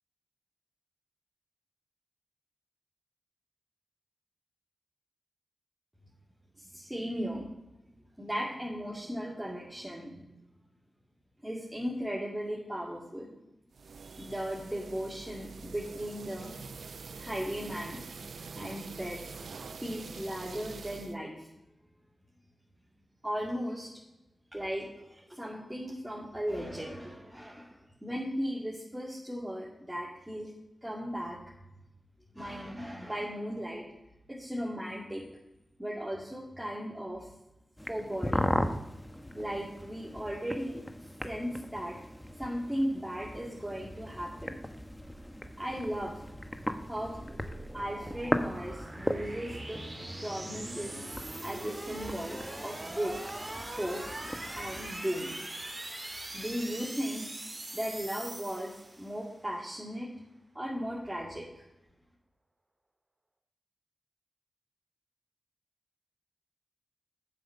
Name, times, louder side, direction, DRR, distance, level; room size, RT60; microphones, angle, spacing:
voice 1, 6.6-7.5 8.2-10.3 11.4-13.3 14.0-16.5 17.2-18.0 18.6-19.2 19.8-21.5 23.2-23.9 24.5-30.5 30.8-31.4 32.3-33.8 34.3-35.2 35.8-37.3 37.9-38.5 39.3-40.8 41.2-42.0 42.4-44.5 45.6-46.2 46.8-47.2 47.7-49.8 50.2-50.9 51.4-53.2 53.8-54.0 54.6-55.3 56.3-57.2 57.7-60.1 60.5-61.6, equal, 10° right, -6 dB, 2.3 m, -36 dB
sound 1, 13.7-21.2, right 5 dB, 75° right, 0.4 m, -45 dB
sound 2, 37.8-54.9, equal, 10° left, 0.9 m, -38 dB
sound 3, 44.9-59.3, right 1 dB, 40° right, 2.1 m, -42 dB
7.6 x 5.4 x 6.7 m, 0.91 s
cardioid pair, 40°, 0 cm